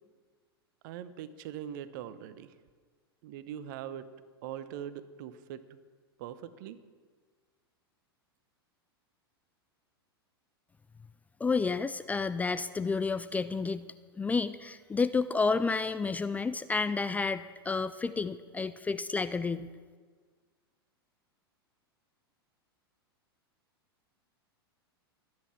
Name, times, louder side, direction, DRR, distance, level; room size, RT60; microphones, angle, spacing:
voice 1, 0.8-2.5 3.2-4.1 4.4-5.8 6.2-6.8, right 10 dB, 50° right, 14 dB, 0.9 m, -42 dB
voice 2, 11.4-13.9 14.2-19.7, left 4 dB, 10° left, 13 dB, 0.4 m, -30 dB
24.0 x 9.6 x 4.5 m, 1.5 s
figure-of-eight pair, 95°, 13 cm